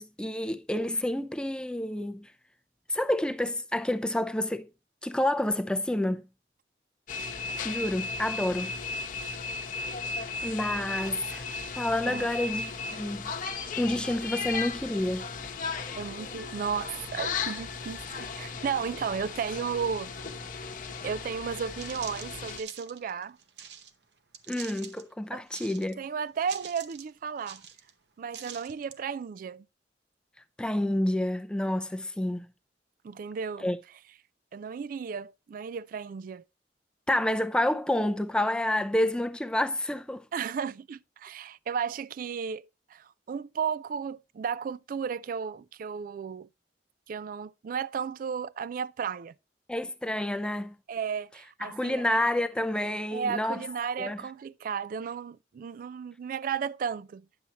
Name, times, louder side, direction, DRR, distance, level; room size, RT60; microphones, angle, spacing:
voice 1, 0.0-2.3 2.9-4.7 5.0-6.2 7.6-8.7 10.4-11.5 11.8-13.3 13.8-15.3 24.5-26.0 30.6-32.5 33.6-33.8 37.1-40.2 49.7-50.8 51.6-53.6 54.0-54.2, left 1 dB, 5° left, 0.5 m, -29 dB
sound 1, 7.1-22.6, left 4 dB, 50° left, 1.0 m, -36 dB
voice 2, 16.0-18.0 18.4-20.1 21.0-23.4 25.3-25.4 26.0-27.6 28.2-29.7 33.0-33.7 34.5-36.4 40.3-46.5 47.1-49.3 50.9-52.0 53.1-57.2, right 6 dB, 50° right, 0.3 m, -34 dB
sound 2, 21.4-21.5 21.8-23.9 24.3-25.0 25.5-26.1 26.4-27.1 27.4-27.9 28.3-29.0, right 8 dB, 70° right, 0.8 m, -45 dB
9.7 x 7.0 x 2.9 m
head